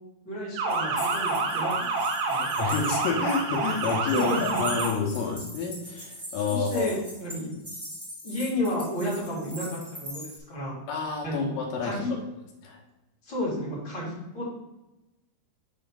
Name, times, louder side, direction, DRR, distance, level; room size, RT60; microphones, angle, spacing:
voice 1, 0.2-1.8 2.3-2.5 4.1-4.8 6.5-7.5 8.2-10.8 11.2-11.5 11.8-12.1 13.2-14.5, left 1 dB, 30° left, -7 dB, 2.6 m, -31 dB
Motor vehicle (road) / Siren, 0.6-4.9, right 3 dB, 70° right, 2.3 m, -28 dB
sound 1, 0.7-10.4, equal, 10° right, 0.7 m, -42 dB
voice 2, 2.6-4.3 4.6-6.9 10.9-12.0 12.6-12.8, left 5 dB, 75° left, 0 dB, 2.2 m, -29 dB
6.9 x 5.3 x 3.7 m, 0.98 s
omnidirectional pair, 4.8 m